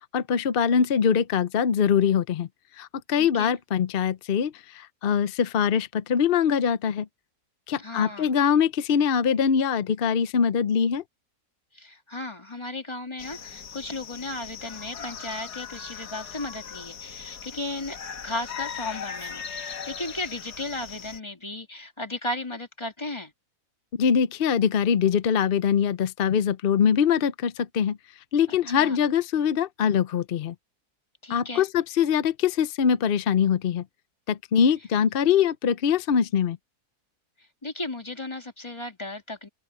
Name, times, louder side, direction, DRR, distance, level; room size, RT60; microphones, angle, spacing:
voice 1, 0.1-2.5 2.8-7.1 7.7-11.0 24.0-28.0 28.3-30.5 31.3-33.8 34.3-36.6, left 7 dB, 55° left, 0.6 m, -23 dB
voice 2, 3.1-3.5 7.8-8.3 11.7-18.0 18.2-23.3 28.5-29.0 31.2-31.7 37.4-39.5, left 2 dB, 15° left, 2.5 m, -35 dB
sound 1, 13.2-21.2, left 7 dB, 85° left, 2.1 m, -39 dB
omnidirectional pair, 1.7 m